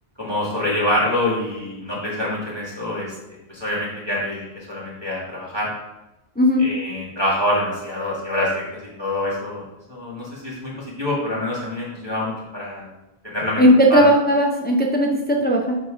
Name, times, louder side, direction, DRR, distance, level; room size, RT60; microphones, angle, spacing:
voice 1, 0.2-3.1 3.5-5.7 6.6-8.6 9.0-9.6 9.9-10.7 11.0-12.9 13.2-13.6 13.9-14.1, left 1 dB, 25° right, -7 dB, 1.8 m, -25 dB
voice 2, 13.6-15.8, equal, 15° left, 0 dB, 0.4 m, -16 dB
6.7 x 3.0 x 4.9 m, 0.99 s
omnidirectional pair, 1.1 m